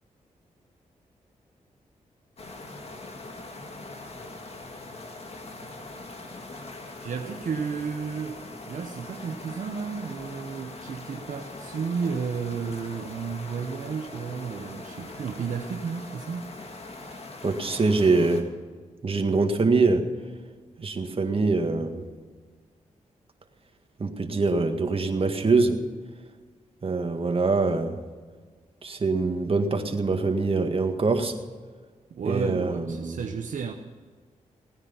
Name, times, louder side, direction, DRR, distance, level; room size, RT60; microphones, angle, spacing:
sound 1, 2.4-18.4, left 2 dB, 50° left, 2.2 m, -42 dB
voice 1, 7.0-16.5 32.1-33.7, right 6 dB, 70° right, 4 dB, 1.0 m, -32 dB
voice 2, 17.4-18.4 19.0-20.0 20.8-22.1 24.0-25.8 26.8-27.9 28.8-31.3 32.3-33.2, right 3 dB, 45° right, 5 dB, 1.9 m, -24 dB
17.5 x 9.9 x 5.7 m, 1.5 s
cardioid pair, 60°, 14 cm